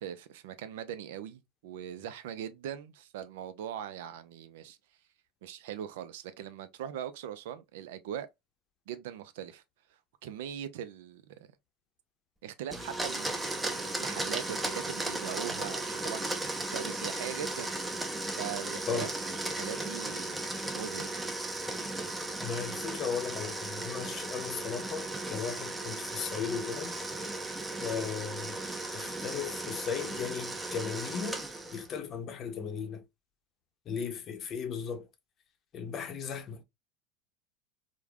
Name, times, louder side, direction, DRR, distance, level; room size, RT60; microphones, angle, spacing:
voice 1, 0.0-4.8 5.4-8.3 8.9-9.6 10.2-11.4 12.4-17.7 18.4-19.1 19.4-21.3, right 10 dB, 70° right, 0.3 m, -41 dB
Domestic sounds home sounds, 12.7-31.9, right 2 dB, 10° right, 0.6 m, -36 dB
voice 2, 22.4-27.0 27.8-28.6 28.9-31.4 31.7-33.0 33.9-35.1 35.7-36.6, left 6 dB, 40° left, 0.6 m, -36 dB
3.2 x 2.0 x 2.2 m
hypercardioid pair, 85°, 0 cm